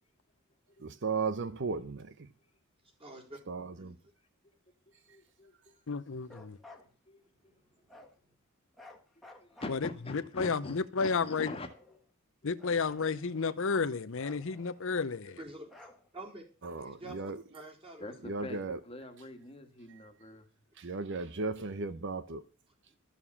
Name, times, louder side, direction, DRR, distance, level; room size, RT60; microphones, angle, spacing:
voice 1, 0.8-2.1 3.5-3.9 16.6-17.4 18.3-18.8 20.8-22.4, right 4 dB, 55° right, 0.7 m, -35 dB
voice 2, 3.0-3.4 3.8-4.0 7.5-7.6 15.4-15.7 16.1-16.4 16.8-18.2 22.9-23.0, right 2 dB, 25° right, 3.8 m, -47 dB
voice 3, 5.1-5.7 6.7-7.2 9.2-12.0 18.0-20.5, left 1 dB, 25° left, 1.6 m, -45 dB
voice 4, 5.9-6.6 9.7-11.5 12.4-15.4, left 5 dB, 60° left, 0.7 m, -32 dB
Bark, 6.2-6.9 7.9-8.2 8.7-10.2 11.0-12.1 12.6-13.7 14.2-15.2 15.7-16.4, left 2 dB, ahead, 1.7 m, -55 dB
13.0 x 7.1 x 7.1 m
head